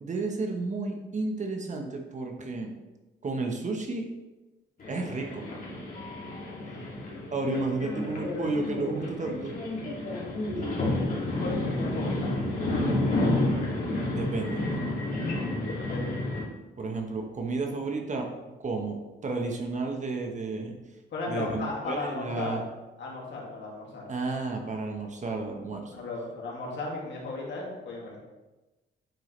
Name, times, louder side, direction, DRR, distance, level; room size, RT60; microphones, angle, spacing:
voice 1, 0.0-2.7 3.2-4.1 4.9-5.4 7.3-9.5 14.1-14.6 16.8-18.3 18.6-20.8 21.3-22.6 24.1-25.9, right 3 dB, 35° right, 3 dB, 1.2 m, -32 dB
sound 1, 4.8-16.4, left 2 dB, 45° left, 2.4 m, -30 dB
voice 2, 6.6-7.0 7.9-8.2 10.2-10.5 10.8-10.9 11.3-12.5 15.6-16.2 21.1-22.5 23.0-24.1 25.9-28.2, left 3 dB, 65° left, -3 dB, 2.2 m, -36 dB
9.0 x 4.9 x 3.3 m, 1.1 s
cardioid pair, 90°, 20 cm